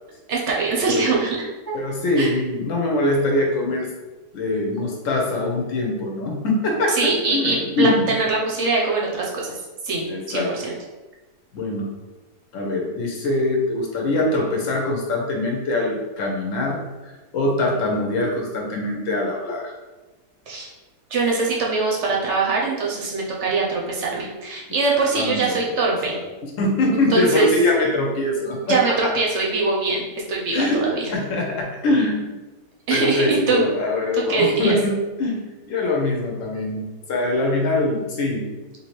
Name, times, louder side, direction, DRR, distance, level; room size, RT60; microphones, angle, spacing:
voice 1, 0.3-1.7 2.2-2.4 7.0-9.5 9.8-10.7 20.5-20.7 21.1-26.2 27.1-27.5 28.6-30.0 30.3-31.1 32.9-33.7 34.2-34.7, right 3 dB, 65° right, -2 dB, 0.7 m, -22 dB
voice 2, 1.7-3.9 4.3-7.0 7.3-8.1 10.1-10.5 11.5-11.9 12.5-19.7 25.1-25.6 26.0-26.2 26.6-28.8 30.5-32.4 32.9-38.5, left 2 dB, 60° left, 0 dB, 1.0 m, -23 dB
3.4 x 2.7 x 3.0 m, 1.1 s
omnidirectional pair, 1.7 m